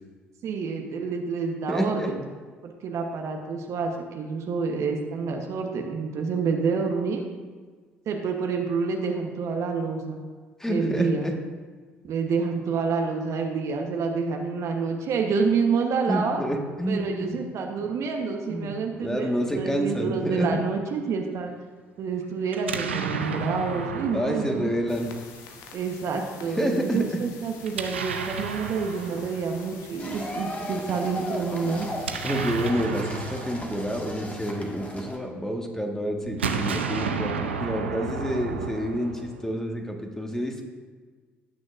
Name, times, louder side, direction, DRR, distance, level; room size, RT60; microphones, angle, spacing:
voice 1, 0.4-2.2 2.6-7.2 8.1-10.2 10.7-11.3 12.0-16.4 16.9-21.5 22.0-24.7 25.7-31.9, right 5 dB, 55° right, 3 dB, 1.0 m, -28 dB
voice 2, 1.7-2.1 10.6-11.3 16.1-17.4 17.8-17.9 18.5-18.7 19.0-20.6 24.1-25.1 26.5-27.2 32.2-40.6, equal, 10° left, 2 dB, 1.5 m, -28 dB
Explosion, 22.5-25.5 27.6-29.9 31.7-35.2 36.2-39.6, right 5 dB, 90° right, 0.5 m, -33 dB
sound 1, 24.9-32.7, left 6 dB, 70° left, 0.9 m, -48 dB
sound 2, 30.0-35.2, left 1 dB, 25° left, 1.7 m, -36 dB
17.0 x 6.2 x 2.5 m, 1.5 s
hypercardioid pair, 50°, 6 cm